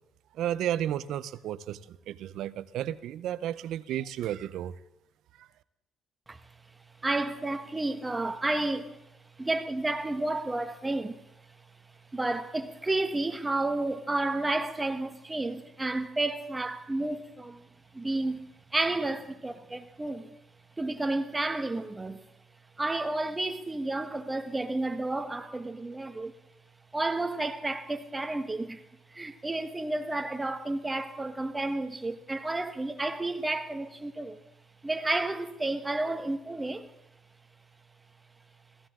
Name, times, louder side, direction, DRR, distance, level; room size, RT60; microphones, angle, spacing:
voice 1, 0.3-4.7 5.4-5.5, right 11 dB, 75° right, 0.6 m, -33 dB
voice 2, 7.0-9.0 9.4-11.2 12.1-17.7 17.9-18.4 18.7-20.3 20.8-22.2 22.8-26.3 26.9-28.8 29.1-34.4 34.8-36.9, right 2 dB, 15° right, 1.3 m, -31 dB
15.5 x 15.5 x 3.7 m
cardioid pair, 95°, 0 cm